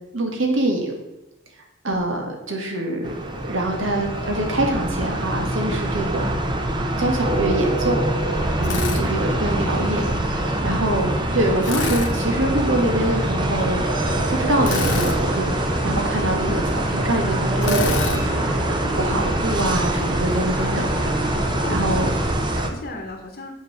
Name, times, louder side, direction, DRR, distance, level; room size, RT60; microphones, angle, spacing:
voice 1, 0.1-0.9 1.8-6.3 7.0-8.0 8.6-13.8 14.3-15.5 15.8-21.4 21.7-22.1, right 1 dB, 75° right, 2 dB, 1.7 m, -25 dB
sound 1, 3.0-22.7, right 1 dB, 20° right, 0.8 m, -24 dB
sound 2, 8.2-22.3, equal, 5° right, 1.8 m, -30 dB
Drill, 8.6-9.0 11.6-12.1 14.6-15.2 17.6-18.2, left 3 dB, 70° left, 1.2 m, -26 dB
voice 2, 21.3-23.5, left 2 dB, 45° left, 1 dB, 1.1 m, -36 dB
7.2 x 5.5 x 6.6 m, 0.99 s
head